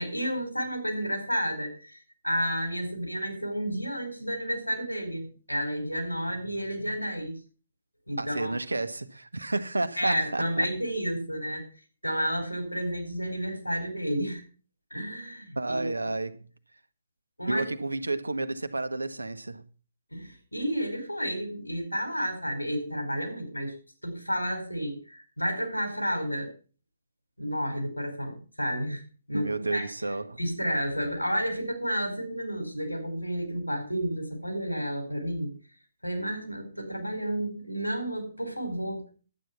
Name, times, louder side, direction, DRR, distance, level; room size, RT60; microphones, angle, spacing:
voice 1, 0.0-7.4 8.1-8.5 10.0-11.6 12.0-14.4 14.9-15.9 17.4-17.6 20.1-23.7 24.0-26.5 27.4-29.0 29.3-29.9 30.4-35.5 36.0-39.1, equal, 85° left, 4.7 m, -31 dB
voice 2, 8.2-10.7 15.6-16.4 17.5-19.7 29.3-30.4, right 2 dB, 75° right, 1.2 m, -31 dB
11.5 x 9.2 x 5.9 m
figure-of-eight pair, 130°, 0 cm